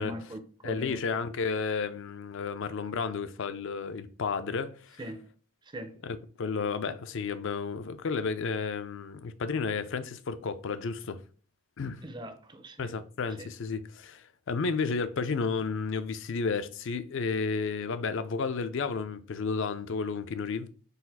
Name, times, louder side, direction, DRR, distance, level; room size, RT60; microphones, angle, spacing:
voice 1, 0.0-1.0 5.0-5.3 5.6-6.0 12.0-12.9 13.4-13.5, equal, 20° right, 0.5 m, -41 dB
voice 2, 0.6-5.0 6.0-11.2 11.8-12.0 12.8-20.7, left 5 dB, 60° left, 0.4 m, -32 dB
4.0 x 2.4 x 4.0 m
head